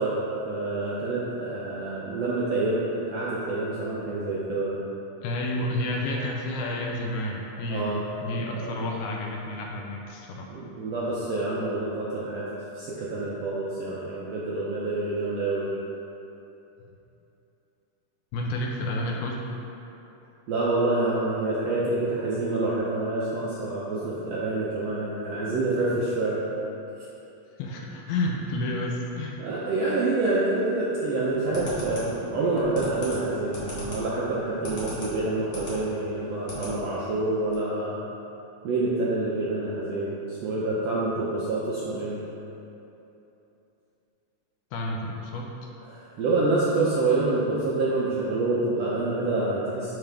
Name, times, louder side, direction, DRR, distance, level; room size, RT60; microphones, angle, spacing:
voice 1, 0.0-4.8 7.7-8.0 8.3-8.8 10.5-12.5 12.7-15.7 20.5-26.4 29.4-38.0 38.6-40.2 40.4-42.2 45.9-49.9, right 2 dB, 75° right, -7 dB, 1.5 m, -27 dB
voice 2, 5.2-10.5 18.3-19.5 27.6-29.5 44.7-45.5, left 1 dB, 75° left, -1 dB, 2.0 m, -30 dB
sound 1, 31.2-35.8 36.1-36.7 37.1-37.2 37.4-37.5, left 1 dB, 45° left, 1.9 m, -37 dB
10.5 x 3.7 x 3.4 m, 2.9 s
omnidirectional pair, 3.7 m